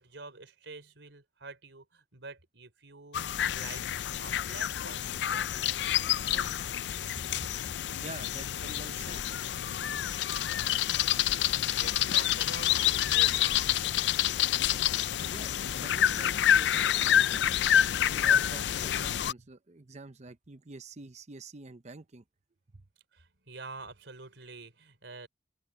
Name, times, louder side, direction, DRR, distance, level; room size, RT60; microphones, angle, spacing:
voice 1, 0.0-3.2 3.5-3.8 4.1-6.6 7.3-7.4 10.5-13.7 23.1-25.3, right 3 dB, 80° right, 4.0 m, -48 dB
sound 1, 3.1-19.3, left 10 dB, 70° left, 0.4 m, -28 dB
voice 2, 8.0-9.2 15.0-17.5 18.1-22.2 22.7-22.8, right 3 dB, 40° right, 0.8 m, -47 dB
open air
head